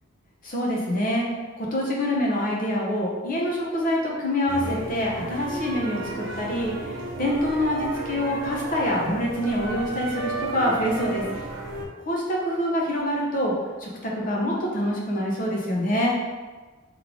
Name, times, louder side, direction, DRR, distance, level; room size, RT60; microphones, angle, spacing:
voice 1, 0.4-1.3 1.6-11.3 12.0-13.5 13.8-16.1, left 1 dB, 45° left, -3 dB, 0.9 m, -26 dB
sound 1, 4.5-11.9, right 2 dB, 65° right, 0.7 m, -33 dB
3.4 x 3.3 x 3.7 m, 1.3 s
head